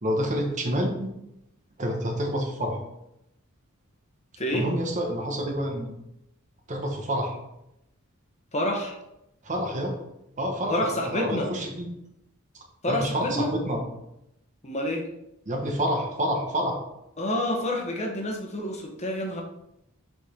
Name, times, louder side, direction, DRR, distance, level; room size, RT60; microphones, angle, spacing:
voice 1, 0.0-1.1 1.8-2.8 4.5-5.9 6.7-7.4 9.4-10.0 10.4-10.8 11.1-11.9 12.5-13.8 15.5-16.8, equal, 35° right, 2 dB, 1.2 m, -28 dB
voice 2, 4.4-4.7 8.5-9.0 10.7-11.5 12.8-13.5 14.6-15.0 17.2-19.4, left 1 dB, 30° left, 1 dB, 1.2 m, -28 dB
6.3 x 5.3 x 4.4 m, 0.85 s
head